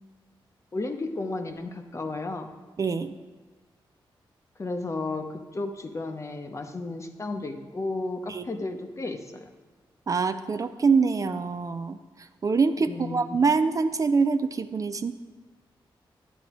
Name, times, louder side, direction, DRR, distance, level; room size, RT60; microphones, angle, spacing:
voice 1, 0.7-2.5 4.6-9.5 12.9-13.4, left 2 dB, 35° left, 6 dB, 0.7 m, -33 dB
voice 2, 2.8-3.1 8.3-8.5 10.1-15.1, right 4 dB, 40° right, 10 dB, 0.4 m, -25 dB
10.0 x 8.6 x 3.0 m, 1.3 s
cardioid pair, 85°, 9 cm